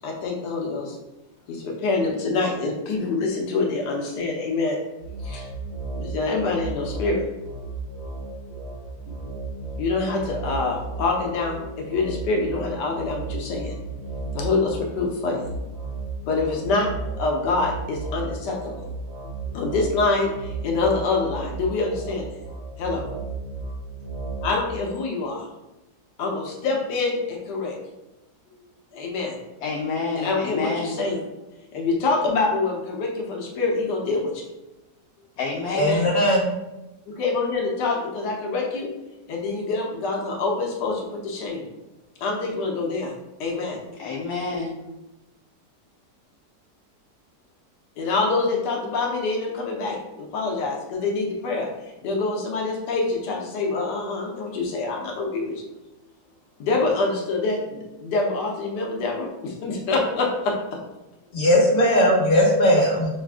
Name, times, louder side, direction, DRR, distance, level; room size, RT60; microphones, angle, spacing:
voice 1, 0.0-1.0 1.5-4.8 5.2-5.5 6.0-7.3 9.8-13.8 14.3-15.5 16.2-16.9 17.2-18.9 19.5-22.3 22.8-23.0 24.4-25.5 26.2-27.7 28.9-29.4 30.2-31.2 31.7-34.5 35.7-36.1 37.1-38.9 39.3-41.6 42.2-43.1 43.4-43.8 48.0-55.6 56.6-60.8, left 3 dB, 90° left, 0 dB, 1.4 m, -26 dB
sound 1, 5.0-24.6, right 3 dB, 70° right, 1.6 m, -34 dB
voice 2, 29.6-31.0 35.4-36.0 44.0-44.8, left 4 dB, 70° left, -1 dB, 1.1 m, -28 dB
voice 3, 35.8-36.4 61.3-63.1, equal, 40° left, -5 dB, 1.8 m, -18 dB
6.0 x 2.4 x 3.5 m, 0.97 s
omnidirectional pair, 1.8 m